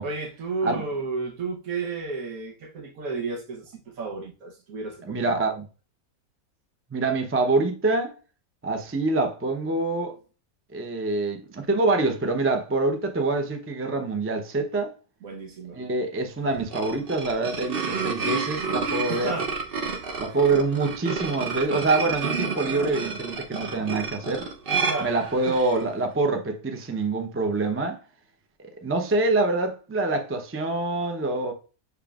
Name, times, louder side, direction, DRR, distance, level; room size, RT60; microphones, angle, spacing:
voice 1, 0.0-5.6 15.2-15.8 19.1-19.5 20.2-20.4 24.8-25.2 25.5-25.6, right 4 dB, 80° right, 1.3 m, -32 dB
voice 2, 5.1-5.6 6.9-8.1 8.6-10.1 10.7-14.9 15.8-19.3 20.2-24.5 25.0-28.0 28.8-31.5, right 3 dB, 20° right, 0.4 m, -25 dB
sound 1, 16.5-25.8, right 5 dB, 50° right, 0.8 m, -30 dB
7.0 x 3.2 x 2.4 m
omnidirectional pair, 1.5 m